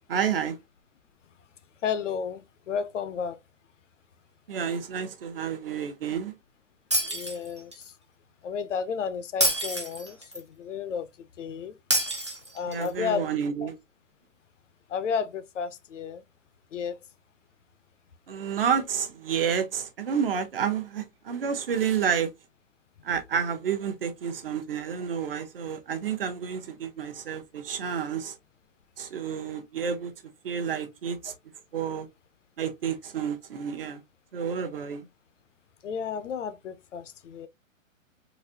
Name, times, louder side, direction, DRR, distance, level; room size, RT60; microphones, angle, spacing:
voice 1, 0.1-0.6 4.5-6.3 12.7-13.7 18.3-22.3 23.0-28.4 29.0-30.1 30.4-31.3 31.7-32.1 32.6-34.0 34.3-35.1, right 7 dB, 45° right, 0.8 m, -30 dB
voice 2, 1.8-3.4 7.0-7.9 8.4-11.1 11.4-11.8 12.5-13.3 13.6-13.7 14.9-16.2 16.7-17.0 35.8-37.5, left 6 dB, 60° left, 0.6 m, -32 dB
Shatter, 6.9-7.9 9.4-10.4 11.9-12.9, equal, 25° right, 0.4 m, -27 dB
4.0 x 2.5 x 2.7 m
hypercardioid pair, 165°, 41 cm